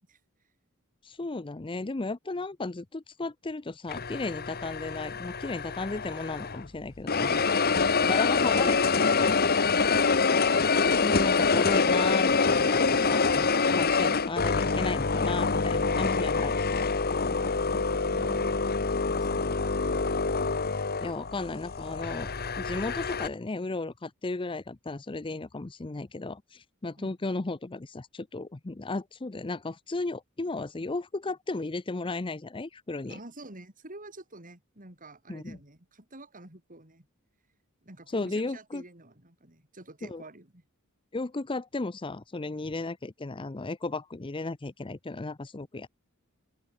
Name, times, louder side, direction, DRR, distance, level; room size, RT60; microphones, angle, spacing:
voice 1, 1.0-7.5 8.0-9.4 11.0-16.9 21.0-22.3 22.6-33.2 35.3-35.6 38.1-38.8 40.1-40.2 41.1-45.9, left 3 dB, 25° left, 0.6 m, -34 dB
sound 1, 3.9-6.7 7.1-23.3, left 4 dB, 45° left, 1.3 m, -26 dB
voice 2, 9.8-10.2 17.3-20.1 27.0-27.1 33.1-37.1 37.8-40.6, right 2 dB, 40° right, 4.5 m, -49 dB
head